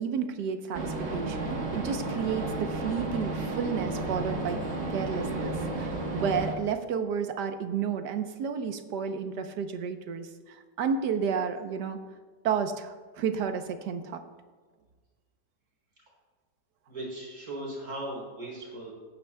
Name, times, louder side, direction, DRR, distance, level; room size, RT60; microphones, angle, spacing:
voice 1, 0.0-4.6 4.9-12.0 12.4-14.2, right 6 dB, 75° right, 8 dB, 1.4 m, -31 dB
sound 1, 0.7-6.5, right 2 dB, 45° right, 1.4 m, -32 dB
voice 2, 16.9-18.9, right 1 dB, 60° right, -4 dB, 4.2 m, -38 dB
20.0 x 8.9 x 2.2 m, 1.4 s
omnidirectional pair, 1.8 m